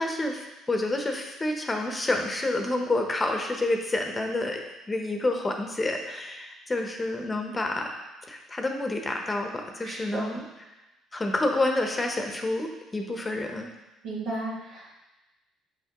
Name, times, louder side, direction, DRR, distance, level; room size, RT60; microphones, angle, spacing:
voice 1, 0.0-4.6 4.9-7.9 8.3-10.5 11.1-13.7, left 2 dB, 25° left, 3 dB, 0.9 m, -28 dB
voice 2, 9.8-10.3 14.0-15.0, right 2 dB, 75° right, -6 dB, 1.9 m, -34 dB
5.7 x 5.7 x 3.0 m, 1.0 s
hypercardioid pair, 65°, 0 cm